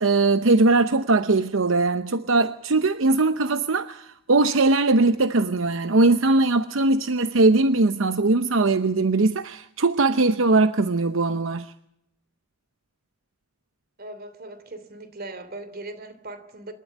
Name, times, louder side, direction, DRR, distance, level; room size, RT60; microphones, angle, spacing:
voice 1, 0.0-11.7, right 3 dB, 75° right, 0.8 m, -20 dB
voice 2, 14.0-16.7, right 2 dB, 50° right, 3.0 m, -39 dB
27.0 x 13.0 x 9.2 m
head